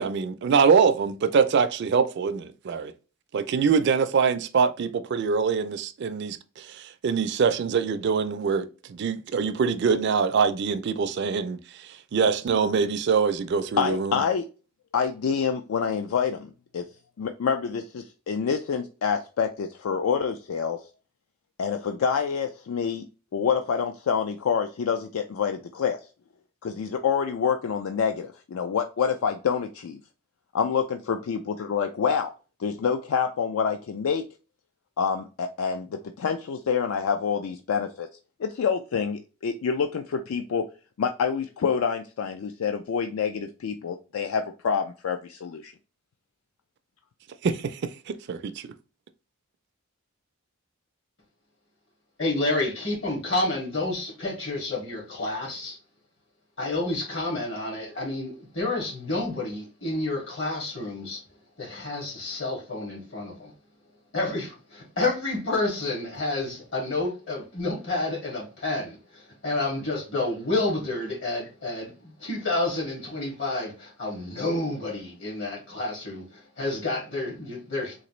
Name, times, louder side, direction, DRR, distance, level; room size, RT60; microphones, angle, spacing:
voice 1, 0.0-2.9 3.3-14.2 47.4-48.7, right 5 dB, 55° right, 0.3 m, -24 dB
voice 2, 13.8-14.5 14.9-16.8 17.2-20.8 21.6-23.1 23.3-26.0 26.6-30.0 30.5-32.3 32.6-34.2 35.0-38.1 38.4-40.6 41.0-45.7, left 6 dB, 75° left, 0.4 m, -27 dB
voice 3, 52.2-55.8 56.6-61.2 61.6-63.5 64.1-78.0, left 2 dB, 60° left, 2.0 m, -29 dB
3.9 x 2.5 x 3.0 m
head